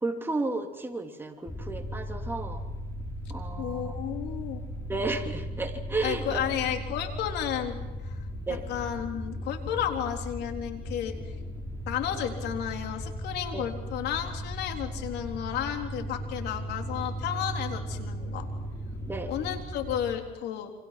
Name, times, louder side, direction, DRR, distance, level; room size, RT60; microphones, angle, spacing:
voice 1, 0.0-2.6 3.3-3.9 4.9-6.2 8.5-8.6 13.5-13.6 19.1-19.3, right 3 dB, 15° right, 3 dB, 3.2 m, -32 dB
sound 1, 1.5-20.2, equal, 15° left, 5.5 m, -37 dB
voice 2, 3.6-4.6 6.0-7.8 8.0-11.3 11.9-18.5 19.3-20.7, left 10 dB, 80° left, 5 dB, 3.8 m, -32 dB
28.5 x 25.5 x 6.0 m, 1.1 s
cardioid pair, 110°, 17 cm